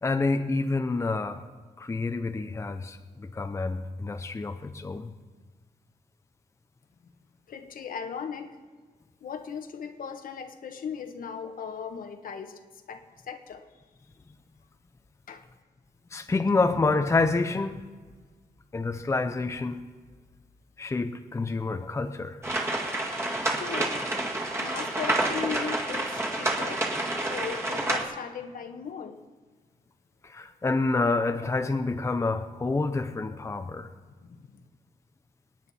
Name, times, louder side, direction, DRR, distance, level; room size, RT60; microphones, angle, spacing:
voice 1, 0.0-1.4 1.8-5.1 16.1-17.8 18.7-19.8 20.8-22.4 30.2-33.9, left 3 dB, 20° left, 7 dB, 0.7 m, -28 dB
voice 2, 7.5-8.6 9.2-12.6 12.9-13.7 15.3-15.5 23.5-24.0 24.6-26.9 27.2-29.2 33.8-33.9 34.2-34.6, left 7 dB, 65° left, 6 dB, 1.3 m, -38 dB
sound 1, 22.4-28.0, right 2 dB, 15° right, 2.0 m, -29 dB
26.5 x 9.5 x 4.3 m, 1.4 s
wide cardioid pair, 125°, 15 cm